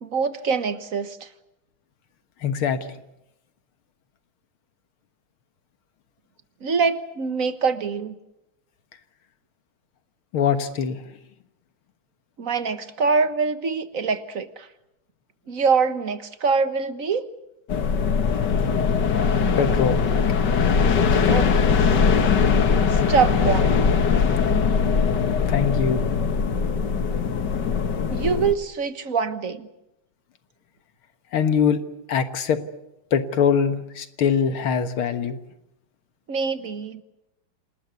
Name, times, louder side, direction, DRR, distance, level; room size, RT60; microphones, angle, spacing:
voice 1, 0.0-1.3 6.6-8.2 12.4-14.7 15.5-17.3 21.3-21.5 22.9-23.9 28.1-29.7 36.3-37.0, right 5 dB, 45° right, 12 dB, 1.6 m, -24 dB
voice 2, 2.4-2.8 10.3-11.0 19.6-20.0 25.5-26.0 31.3-31.8 32.1-32.6 33.1-35.4, left 7 dB, 80° left, 10 dB, 2.3 m, -22 dB
sound 1, 17.7-28.5, left 5 dB, 55° left, 2.0 m, -21 dB
28.0 x 19.5 x 8.2 m, 0.88 s
omnidirectional pair, 2.3 m